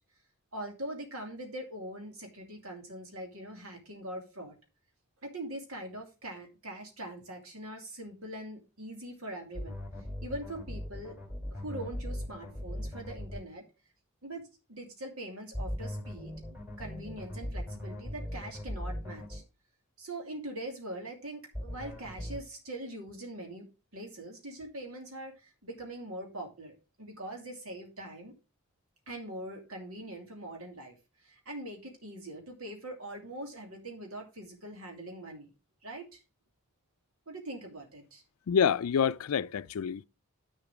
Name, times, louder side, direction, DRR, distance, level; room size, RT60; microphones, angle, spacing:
voice 1, 0.5-4.6 5.2-9.8 10.2-11.2 11.5-13.6 14.2-16.3 16.8-19.4 20.0-23.7 23.9-28.4 29.1-35.5 35.8-36.2 37.3-38.2, right 1 dB, 85° right, 2.7 m, -42 dB
sound 1, 9.5-13.4 15.5-19.4 21.5-22.4, left 1 dB, 5° right, 3.4 m, -38 dB
voice 2, 38.5-40.0, left 7 dB, 85° left, 0.4 m, -27 dB
8.1 x 6.9 x 4.9 m
head